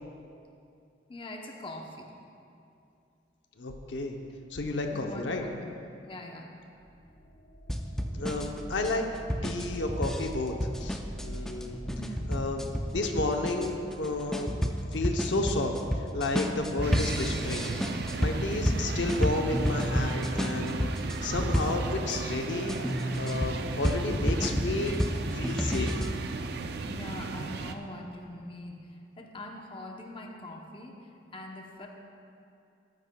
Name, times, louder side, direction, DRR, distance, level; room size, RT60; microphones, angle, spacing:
voice 1, 1.1-2.1 4.9-5.7 6.0-6.5 11.8-12.2 14.6-14.8 26.9-28.8 29.2-31.0 31.3-31.9, left 1 dB, 30° left, 1 dB, 0.7 m, -43 dB
voice 2, 3.6-4.1 4.5-5.5 8.1-9.1 9.4-10.5 10.8-11.8 12.3-12.6 12.9-14.6 14.9-15.7 16.1-17.7 18.2-20.9 21.2-25.0 25.3-25.9, left 2 dB, 90° left, 4 dB, 0.7 m, -31 dB
sound 1, 6.7-21.3, equal, 60° left, 2.3 m, -47 dB
sound 2, 7.7-22.2 22.7-26.2, equal, 5° left, 0.4 m, -31 dB
sound 3, 16.8-27.7, right 4 dB, 60° right, 0.4 m, -36 dB
13.5 x 9.9 x 2.2 m, 2.6 s
head